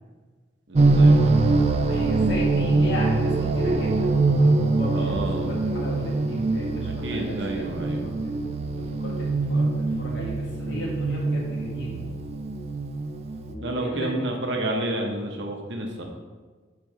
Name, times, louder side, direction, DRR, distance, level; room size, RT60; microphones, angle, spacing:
voice 1, 0.7-1.4 4.9-5.6 6.8-8.1 13.6-16.0, right 1 dB, 85° right, 1 dB, 0.9 m, -30 dB
sound 1, 0.8-13.5, right 3 dB, 35° right, 0.3 m, -23 dB
voice 2, 1.9-8.3 8.8-12.0 13.5-14.1, equal, 85° left, -4 dB, 1.8 m, -35 dB
7.3 x 3.9 x 3.3 m, 1.4 s
head